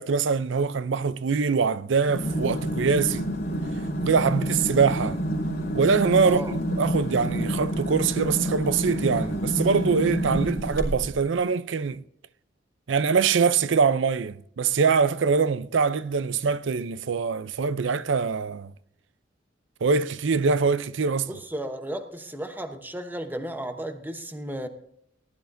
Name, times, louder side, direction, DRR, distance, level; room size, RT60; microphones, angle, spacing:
voice 1, 0.0-3.3 4.0-5.2 5.7-12.0 12.9-18.7 19.8-21.3, right 5 dB, 70° right, 0.5 m, -23 dB
sound 1, 2.1-11.2, equal, 50° left, 3.2 m, -28 dB
voice 2, 21.3-24.7, right 1 dB, 10° right, 0.9 m, -34 dB
19.0 x 11.5 x 2.6 m
head